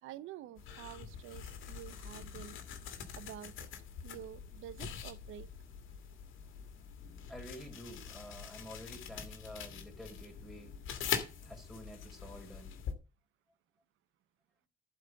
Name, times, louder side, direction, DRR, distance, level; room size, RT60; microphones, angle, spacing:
voice 1, 0.0-2.6 3.1-3.7 4.0-5.5, right 11 dB, 85° right, 0.8 m, -49 dB
sound 1, 0.6-12.9, left 8 dB, 80° left, 1.8 m, -44 dB
voice 2, 7.3-10.8 11.4-12.7, equal, ahead, 4.4 m, -49 dB
11.5 x 4.9 x 7.4 m
cardioid pair, 90°, 20 cm